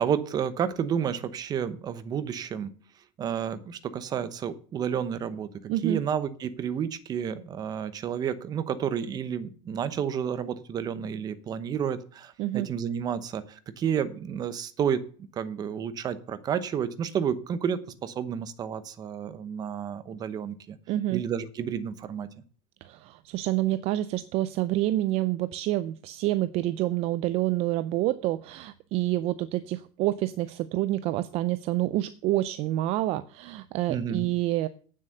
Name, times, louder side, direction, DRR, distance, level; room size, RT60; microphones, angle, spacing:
voice 1, 0.0-2.7 3.2-5.5 5.8-15.0 15.3-20.8 21.1-22.3 33.9-34.3, right 8 dB, 25° right, 13 dB, 0.9 m, -30 dB
voice 2, 5.7-6.0 12.4-12.7 20.9-21.2 22.8-34.7, right 15 dB, 45° right, 14 dB, 0.5 m, -28 dB
9.0 x 7.4 x 6.6 m, 0.42 s
supercardioid pair, 155°, 15 cm